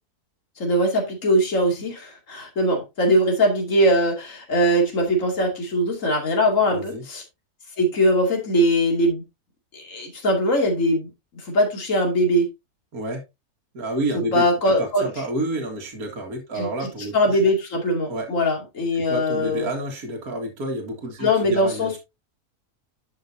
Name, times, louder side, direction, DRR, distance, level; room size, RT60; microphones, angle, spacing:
voice 1, 0.6-7.2 7.8-9.2 9.7-11.1 11.5-12.5 14.1-15.1 16.5-16.7 17.1-19.7 21.2-22.0, equal, 55° left, 2.9 m, -21 dB
voice 2, 6.7-7.0 12.9-13.2 13.7-14.5 14.8-17.2 18.1-18.3 18.9-21.9, right 1 dB, 65° right, 2.2 m, -29 dB
11.0 x 6.4 x 2.7 m
omnidirectional pair, 1.7 m